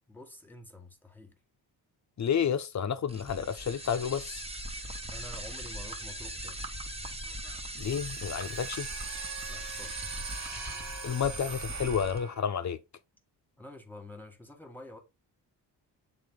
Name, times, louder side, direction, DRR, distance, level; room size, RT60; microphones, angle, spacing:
voice 1, 0.1-1.3 5.1-6.6 9.5-10.1 13.6-15.0, left 1 dB, 5° left, 1.7 m, -48 dB
voice 2, 2.2-4.4 7.8-8.9 11.0-12.8, left 7 dB, 40° left, 0.8 m, -30 dB
sound 1, 3.1-12.2, right 1 dB, 15° right, 1.3 m, -40 dB
sound 2, 7.8-12.6, right 5 dB, 40° right, 1.2 m, -41 dB
7.1 x 3.9 x 3.9 m
cardioid pair, 75°, 42 cm